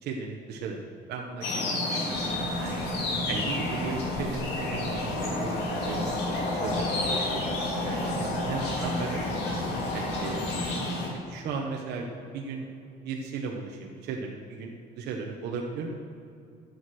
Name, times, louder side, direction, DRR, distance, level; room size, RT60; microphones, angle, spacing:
voice 1, 0.0-2.8 3.3-6.0 6.3-9.4 9.9-10.6 11.1-12.1 12.3-12.7 13.0-15.9, right 4 dB, 80° right, 0 dB, 1.1 m, -36 dB
sound 1, 1.4-11.1, left 2 dB, 80° left, 2.6 m, -30 dB
sound 2, 2.1-10.8, left 3 dB, 25° left, 0.9 m, -43 dB
10.5 x 8.0 x 6.3 m, 2.5 s
cardioid pair, 110°, 17 cm